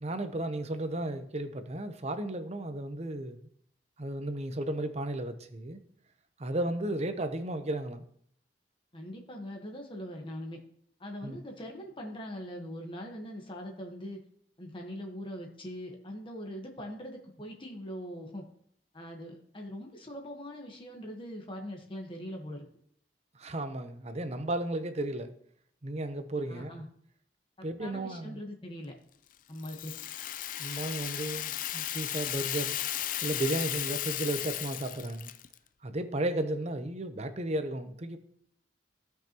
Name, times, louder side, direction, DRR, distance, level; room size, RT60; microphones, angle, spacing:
voice 1, 0.0-3.5 4.0-5.8 6.4-8.0 11.2-11.4 23.3-25.3 25.8-26.8 27.6-28.4 30.6-32.8 33.2-35.3 35.8-38.2, right 1 dB, 40° right, 0.8 m, -34 dB
voice 2, 8.9-10.6 11.0-14.2 14.6-18.4 18.9-22.6 26.5-26.9 27.8-28.9 29.5-29.9, equal, 30° left, 1.3 m, -42 dB
Rattle (instrument), 29.6-35.6, left 12 dB, 50° left, 0.4 m, -35 dB
16.0 x 5.7 x 3.0 m
head